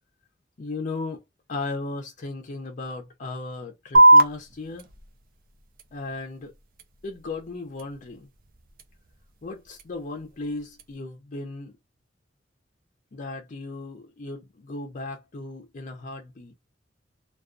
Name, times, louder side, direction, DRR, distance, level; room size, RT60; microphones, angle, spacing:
voice 1, 0.6-1.2 1.5-4.9 5.9-6.5 7.0-8.3 9.4-11.7 13.1-16.5, left 3 dB, 45° left, 0.5 m, -36 dB
sound 1, 3.9-10.9, right 1 dB, 50° right, 0.4 m, -24 dB
2.3 x 2.3 x 2.4 m
head